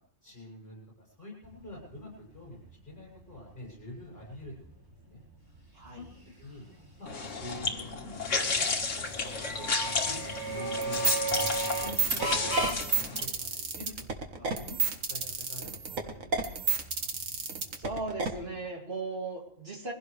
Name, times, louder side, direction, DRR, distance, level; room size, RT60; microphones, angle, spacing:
voice 1, 0.0-4.8 5.1-5.2 5.9-6.1 6.4-6.6 7.0-8.4 8.9-11.4 11.8-12.8 13.1-13.9 14.4-17.1, left 2 dB, 35° left, -3 dB, 7.6 m, -47 dB
sound 1, 1.4-18.6, right 2 dB, 15° right, 3.0 m, -39 dB
voice 2, 5.7-6.1 17.8-19.9, right 3 dB, 45° right, 0 dB, 3.0 m, -37 dB
sound 2, 7.1-13.3, left 4 dB, 55° left, 2.0 m, -32 dB
sound 3, 10.8-18.3, right 5 dB, 65° right, 2.0 m, -30 dB
22.5 x 16.0 x 3.4 m, 0.68 s
omnidirectional pair, 1.5 m